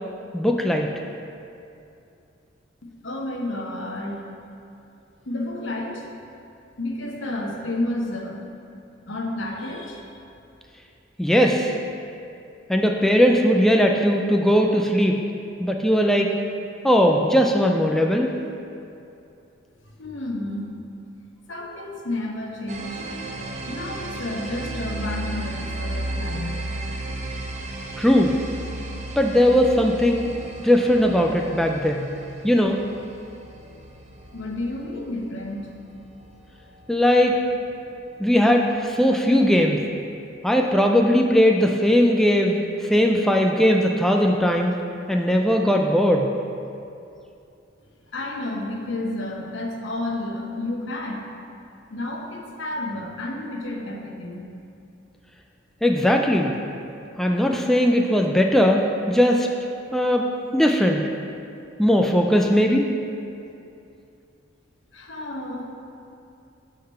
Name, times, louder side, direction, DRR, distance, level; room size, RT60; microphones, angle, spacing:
voice 1, 0.3-0.9 11.2-11.8 12.7-15.2 15.6-16.3 16.8-18.3 28.0-28.4 29.2-30.3 30.6-32.1 32.4-32.9 36.9-37.4 38.2-39.8 40.4-44.7 45.1-46.3 55.8-56.5 57.2-59.5 59.9-61.1 61.8-62.8, equal, ahead, 1 dB, 0.3 m, -19 dB
voice 2, 2.8-4.2 5.3-6.1 6.8-8.4 9.0-10.1 20.0-20.7 21.5-23.0 23.7-26.6 34.3-35.7 48.1-51.3 51.9-54.5 64.9-65.7, left 1 dB, 70° left, 0 dB, 1.0 m, -31 dB
sound 1, 22.7-38.1, right 2 dB, 40° right, 0.6 m, -34 dB
8.4 x 3.9 x 5.5 m, 2.6 s
head